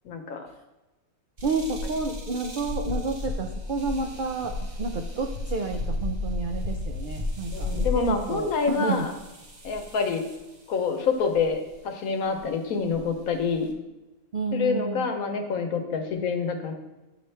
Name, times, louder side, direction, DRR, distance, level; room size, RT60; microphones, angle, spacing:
voice 1, 0.0-0.5 7.5-9.1 9.6-10.2 10.7-13.7 14.5-16.7, left 5 dB, 75° left, 5 dB, 1.3 m, -27 dB
sound 1, 1.4-10.5 11.3-11.7 12.4-12.5 12.9-13.7, left 2 dB, 35° right, 0.8 m, -33 dB
voice 2, 1.4-9.1 14.3-15.1, right 3 dB, 75° right, 4 dB, 0.4 m, -30 dB
9.4 x 4.9 x 3.3 m, 1.1 s
omnidirectional pair, 1.5 m